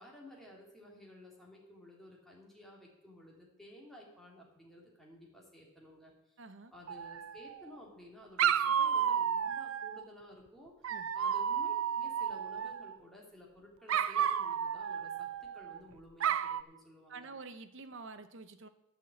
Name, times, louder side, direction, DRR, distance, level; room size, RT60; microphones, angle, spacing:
voice 1, 0.0-6.4 6.7-10.8 11.1-17.3, left 1 dB, ahead, -3 dB, 2.8 m, -54 dB
voice 2, 6.4-6.7 10.9-11.1 17.1-18.7, right 4 dB, 65° right, 10 dB, 0.9 m, -48 dB
Dog, 6.9-7.7 8.4-10.0 10.8-13.0 13.9-15.8 16.2-16.6, right 8 dB, 85° right, 0.5 m, -32 dB
11.5 x 5.9 x 8.5 m, 0.88 s
head